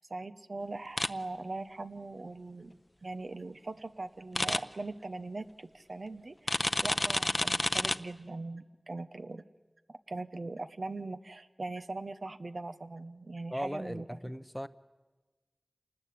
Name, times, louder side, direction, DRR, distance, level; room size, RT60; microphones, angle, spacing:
voice 1, 0.0-9.4 9.9-14.2, right 2 dB, 70° right, 10 dB, 0.9 m, -41 dB
sound 1, 1.0-1.1 4.3-4.6 6.5-8.0, left 1 dB, 35° left, 0.7 m, -29 dB
voice 2, 13.5-14.7, equal, ahead, 13 dB, 0.8 m, -38 dB
27.5 x 19.5 x 8.4 m, 1.3 s
wide cardioid pair, 45°, 0 cm